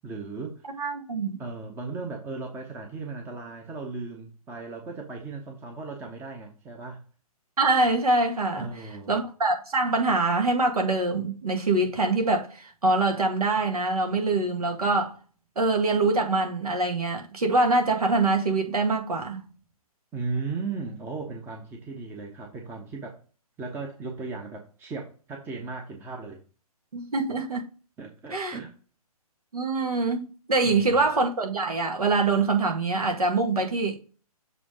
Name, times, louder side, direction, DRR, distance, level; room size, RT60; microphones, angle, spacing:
voice 1, 0.0-0.6 1.4-7.0 8.5-9.2 20.1-23.2 23.6-26.4 28.0-28.7 30.6-31.1, right 4 dB, 10° right, 0.9 m, -36 dB
voice 2, 0.6-1.4 7.6-8.7 9.1-15.2 15.6-19.5 26.9-27.6 28.3-28.6 29.5-34.0, right 3 dB, 70° right, 2.0 m, -24 dB
7.2 x 3.4 x 4.8 m
figure-of-eight pair, 135°, 20 cm